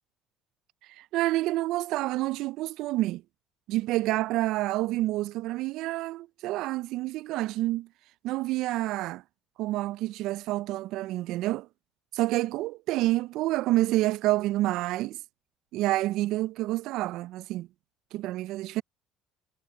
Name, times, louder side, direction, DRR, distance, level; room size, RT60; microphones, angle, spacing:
voice 1, 1.0-3.2 3.7-7.9 8.2-9.2 9.6-11.7 12.1-15.2 15.7-17.7 18.1-18.8, right 17 dB, 75° right, 0.3 m, -28 dB
supercardioid pair, 95°, 0 cm